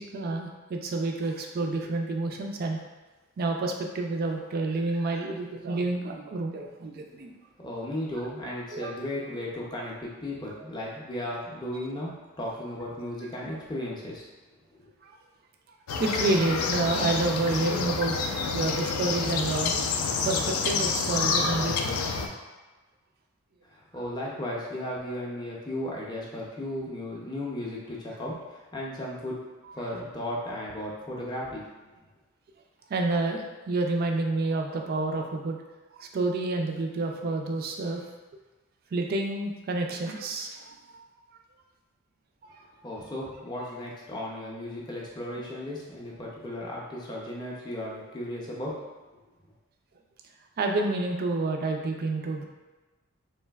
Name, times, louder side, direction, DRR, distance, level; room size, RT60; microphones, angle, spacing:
voice 1, 0.0-2.8 3.4-7.3 8.4-8.9 15.0-15.1 16.0-18.2 18.5-19.7 20.2-22.0 29.6-29.7 32.9-35.6 35.9-38.0 38.9-41.2 42.4-42.5 50.6-52.5, right 2 dB, 45° right, 3 dB, 0.3 m, -29 dB
voice 2, 7.6-14.2 14.7-14.8 23.6-29.4 29.7-31.6 42.8-48.8, left 1 dB, 20° left, -4 dB, 0.5 m, -35 dB
sound 1, 15.9-22.3, left 4 dB, 80° left, 0.3 m, -28 dB
3.2 x 2.6 x 2.2 m, 1.2 s
head